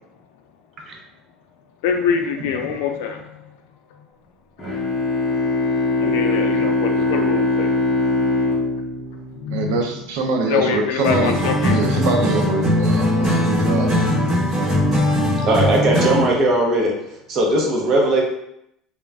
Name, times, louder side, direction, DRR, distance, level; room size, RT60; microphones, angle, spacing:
voice 1, 1.8-3.2 6.0-7.7 9.4-9.8 10.5-11.8, left 6 dB, 80° left, 4 dB, 0.4 m, -24 dB
Bowed string instrument, 4.6-10.1, left 2 dB, 5° left, 0.8 m, -22 dB
voice 2, 9.5-11.3 11.6-14.0, right 3 dB, 80° right, 3 dB, 0.5 m, -23 dB
sound 1, 11.0-16.4, left 1 dB, 20° right, 1.3 m, -20 dB
voice 3, 15.4-16.9 17.3-18.2, right 1 dB, 40° right, 0 dB, 0.7 m, -18 dB
2.3 x 2.1 x 3.4 m, 0.78 s
cardioid pair, 145°, 0 cm